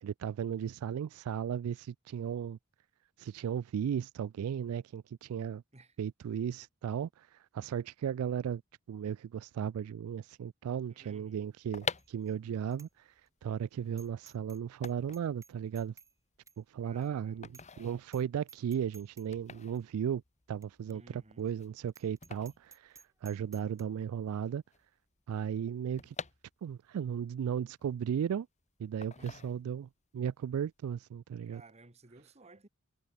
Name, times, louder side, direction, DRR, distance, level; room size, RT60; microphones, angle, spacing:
voice 1, 0.0-2.6 3.2-5.6 6.0-8.6 8.9-13.1 13.4-15.9 16.6-17.5 17.8-20.2 20.5-24.6 25.3-26.2 26.6-28.5 28.8-31.6, right 8 dB, 80° right, 0.3 m, -35 dB
voice 2, 10.9-11.4 16.8-17.5 20.9-21.5 29.1-29.6 31.5-32.7, right 2 dB, 30° right, 1.7 m, -57 dB
sound 1, 11.5-23.6 23.9-24.0 24.1-27.0 27.4-28.5 29.0-30.0 30.4-30.6, left 5 dB, 35° left, 1.5 m, -46 dB
Bicycle bell, 12.0-12.3 12.7-12.9 13.3-13.4 14.0-14.6 14.8-16.1 16.5-16.6 17.0-17.1 17.5-17.8 18.1-18.2 18.5-19.3 19.7-19.8 20.6-20.7 20.9-21.0 21.4-21.5 21.9-23.8, right 5 dB, 15° right, 1.3 m, -56 dB
head